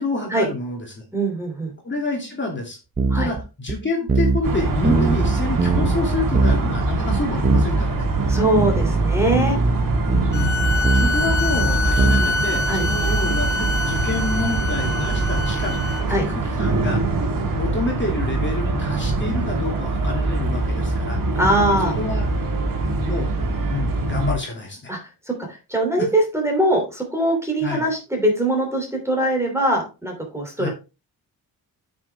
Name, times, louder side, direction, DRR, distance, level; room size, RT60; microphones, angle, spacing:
voice 1, 0.0-1.0 1.8-8.1 10.1-10.5 10.9-17.0 17.6-21.2 21.8-22.3 23.0-23.3 23.7-24.9 26.0-26.1 27.6-27.9 30.6-30.7, left 3 dB, 30° left, 0 dB, 2.8 m, -28 dB
voice 2, 1.1-1.7 3.1-3.3 8.3-9.6 12.7-12.8 16.1-16.2 21.4-21.9 24.9-25.0 25.3-30.7, right 1 dB, 5° right, 2 dB, 3.2 m, -22 dB
sound 1, 3.0-3.4 3.7-3.8 4.1-4.5 4.8-6.0 6.3-7.9 8.2-12.8, right 4 dB, 25° right, 0.9 m, -22 dB
sound 2, 4.4-24.3, right 2 dB, 60° right, 2.1 m, -23 dB
sound 3, 10.3-16.0, left 3 dB, 50° left, 0.9 m, -26 dB
9.0 x 6.4 x 3.5 m, 0.29 s
wide cardioid pair, 145°, 38 cm